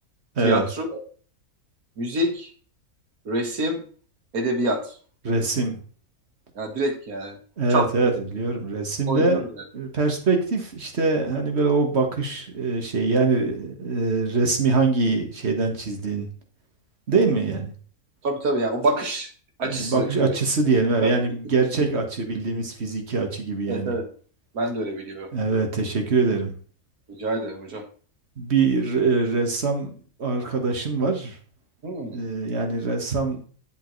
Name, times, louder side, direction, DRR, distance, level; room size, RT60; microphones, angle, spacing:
voice 1, 0.4-0.9 2.0-2.5 3.3-3.8 4.3-4.9 6.6-7.4 7.7-7.9 9.1-9.5 18.2-19.3 19.6-20.1 21.0-21.1 23.7-24.1 24.5-25.3 27.1-27.8 31.8-32.2, right 1 dB, 80° right, 3 dB, 2.2 m, -26 dB
voice 2, 5.2-5.8 7.6-9.4 9.7-16.3 17.1-17.7 19.6-24.0 25.3-26.6 28.4-29.9 30.2-31.3 32.1-33.4, right 3 dB, 45° right, 4 dB, 1.9 m, -23 dB
10.5 x 7.8 x 3.2 m, 0.42 s
omnidirectional pair, 1.5 m